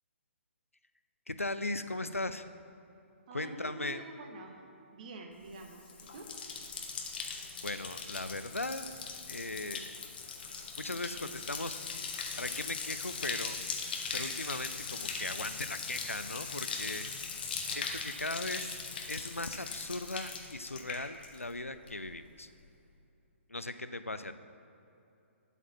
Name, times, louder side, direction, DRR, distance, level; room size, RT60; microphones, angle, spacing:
voice 1, 1.3-2.5 3.3-4.0 7.6-8.9 9.3-9.9 10.8-11.8 12.4-13.6 14.1-17.1 17.7-18.8 19.1-22.5 23.5-24.3, left 2 dB, 85° left, 11 dB, 0.4 m, -38 dB
voice 2, 3.3-4.6 4.9-6.6, right 3 dB, 35° right, 3 dB, 1.0 m, -47 dB
Bathtub (filling or washing), 5.5-21.6 21.9-22.4, left 5 dB, 45° left, 0.9 m, -40 dB
8.0 x 4.8 x 7.1 m, 2.7 s
figure-of-eight pair, 130°, 7 cm